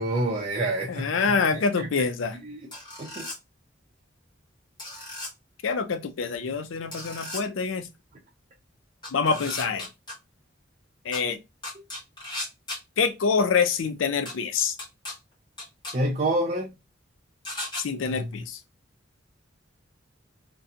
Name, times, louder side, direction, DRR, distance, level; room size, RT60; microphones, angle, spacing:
voice 1, 0.0-1.1 1.5-1.9 2.4-2.7 3.0-3.3 15.9-16.7, right 1 dB, 35° right, 0.5 m, -27 dB
voice 2, 0.9-2.4 5.6-7.9 9.1-9.9 11.0-11.4 13.0-14.8 17.8-18.6, left 5 dB, 80° left, 0.5 m, -26 dB
sound 1, 2.7-3.4 4.8-5.3 6.9-7.4 9.0-10.1 11.1-11.2 11.6-12.8 14.3-14.4 14.8-15.1 15.6-15.9 17.4-17.8, left 1 dB, 25° left, 1.1 m, -35 dB
2.7 x 2.2 x 2.4 m
head